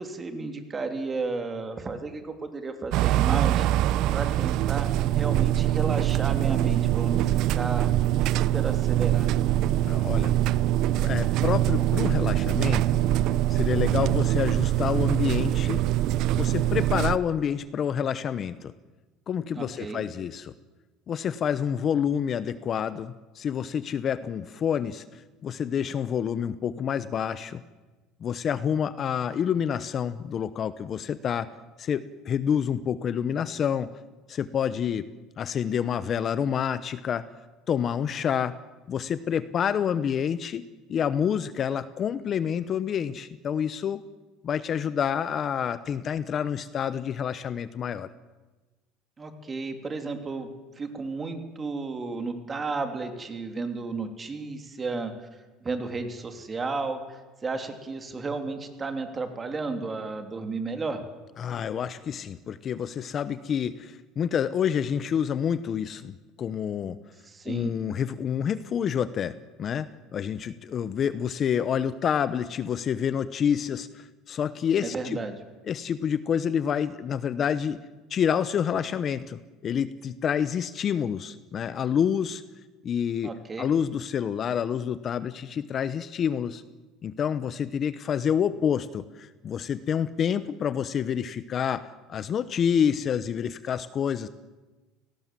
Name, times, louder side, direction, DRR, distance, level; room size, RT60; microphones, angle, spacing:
voice 1, 0.0-7.9 8.2-9.4 19.5-20.0 49.2-50.5 50.8-61.0 67.2-67.7 74.8-75.4 83.2-83.7, right 3 dB, 20° right, 6 dB, 3.1 m, -33 dB
sound 1, 2.9-17.2, right 13 dB, 60° right, 0.7 m, -23 dB
voice 2, 9.8-10.6 11.0-12.9 13.5-15.8 16.4-18.7 19.3-20.5 21.1-27.6 28.2-31.5 31.8-33.9 34.3-35.1 35.4-37.3 37.7-38.6 38.9-44.0 44.4-48.1 61.4-67.0 67.5-75.2 75.7-77.8 78.1-82.4 82.8-83.3 83.6-86.6 87.0-94.3, left 8 dB, 35° left, 14 dB, 0.9 m, -28 dB
29.5 x 18.5 x 7.6 m, 1.2 s
cardioid pair, 135°, 0 cm